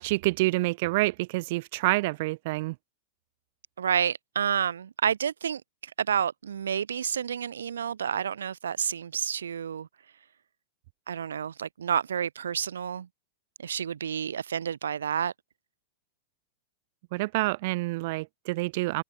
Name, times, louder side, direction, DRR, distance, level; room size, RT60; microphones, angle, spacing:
voice 1, 0.0-2.8 17.1-19.0, right 22 dB, 55° right, 2.5 m, -27 dB
voice 2, 3.8-9.9 11.1-13.1 13.6-15.3, right 8 dB, 80° right, 1.8 m, -29 dB
hypercardioid pair, 105°, 0 cm